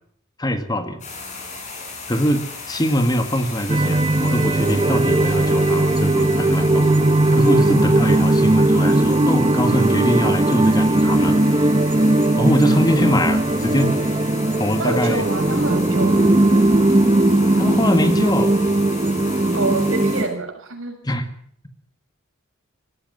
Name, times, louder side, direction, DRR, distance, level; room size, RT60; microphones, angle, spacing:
voice 1, 0.4-1.0 2.1-6.9 7.3-11.4 12.4-14.0 14.6-15.2 17.6-18.5 21.0-21.3, equal, 20° left, 8 dB, 1.8 m, -22 dB
sound 1, 1.0-20.2, left 3 dB, 35° left, 7.9 m, -36 dB
sound 2, 3.7-20.2, right 1 dB, 25° right, 0.9 m, -18 dB
voice 2, 14.8-16.3 19.5-20.9, right 3 dB, 75° right, 3 dB, 6.8 m, -26 dB
18.5 x 15.0 x 9.6 m, 0.62 s
head